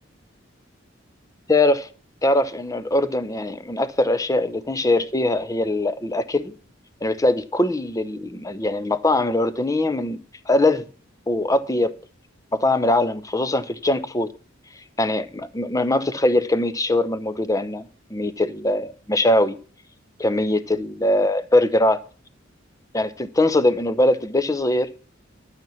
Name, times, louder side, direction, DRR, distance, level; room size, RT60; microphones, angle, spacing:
voice 1, 1.5-1.9 2.2-6.6 7.0-10.2 10.5-10.9 11.3-11.9 12.5-14.3 15.0-19.6 20.2-22.0 22.9-24.9, left 1 dB, 15° left, 0.7 m, -21 dB
12.0 x 5.9 x 7.0 m
head